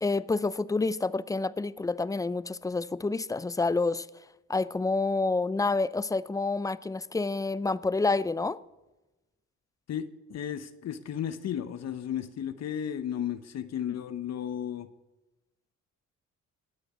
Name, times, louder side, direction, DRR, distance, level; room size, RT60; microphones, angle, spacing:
voice 1, 0.0-4.1 4.5-8.6, left 3 dB, 10° left, 0.5 m, -28 dB
voice 2, 9.9-14.9, left 9 dB, 60° left, 0.9 m, -34 dB
17.5 x 6.5 x 9.4 m
cardioid pair, 90°, 30 cm